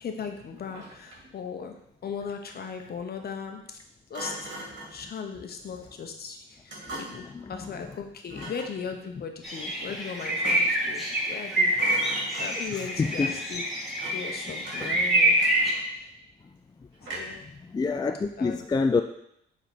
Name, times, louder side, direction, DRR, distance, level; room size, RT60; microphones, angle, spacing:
voice 1, 0.0-3.8 4.1-4.5 4.9-15.4 17.1-17.4 18.4-18.6, left 6 dB, 50° left, 5 dB, 1.1 m, -38 dB
Thump thud, 0.6-1.4 4.1-5.0 6.7-7.3 8.3-8.8 10.2-10.9 11.2-11.5 11.7-12.8 14.0-14.3 14.6-16.0 17.0-17.5, right 1 dB, 70° right, 2.6 m, -40 dB
voice 2, 6.9-7.7 8.3-8.5 12.7-13.3 17.2-17.3 17.7-19.0, left 4 dB, 20° left, 6 dB, 0.4 m, -28 dB
sound 1, 9.4-15.7, right 1 dB, ahead, 2.2 m, -26 dB
7.6 x 4.0 x 5.1 m, 0.75 s
cardioid pair, 90°, 20 cm